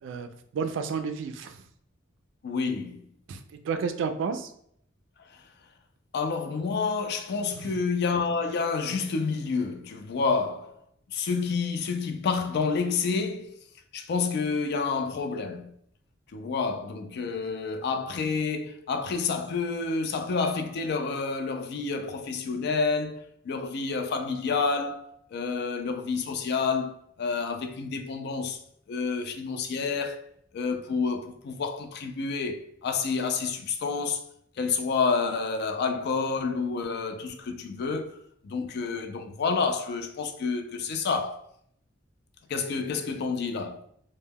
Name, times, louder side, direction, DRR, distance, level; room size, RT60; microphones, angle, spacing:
voice 1, 0.0-1.6 3.3-4.5 7.5-7.8, right 5 dB, 70° right, 0.3 m, -32 dB
voice 2, 2.4-3.0 6.1-10.7 11.1-13.6 13.9-15.7 16.3-28.6 28.9-30.2 30.5-34.2 34.6-38.2 38.4-41.4 42.5-43.9, left 4 dB, 55° left, 0.3 m, -29 dB
2.2 x 2.1 x 3.3 m
head